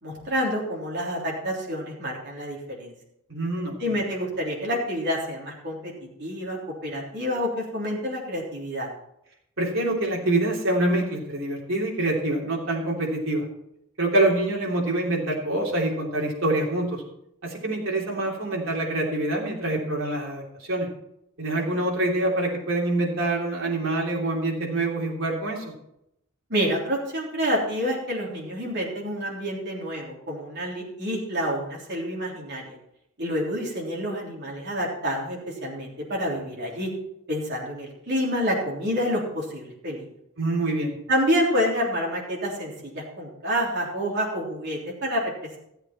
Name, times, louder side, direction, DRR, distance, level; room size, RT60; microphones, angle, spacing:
voice 1, 0.0-2.9 3.8-5.9 6.2-8.9 26.5-32.8 33.2-36.9 37.3-40.1 41.1-45.2, equal, 55° right, -3 dB, 3.4 m, -28 dB
voice 2, 3.3-4.0 9.6-13.4 14.0-17.0 17.4-20.4 20.7-20.9 21.4-25.6 40.4-40.9, right 2 dB, 70° right, -2 dB, 3.2 m, -25 dB
14.5 x 8.0 x 4.4 m, 0.79 s
head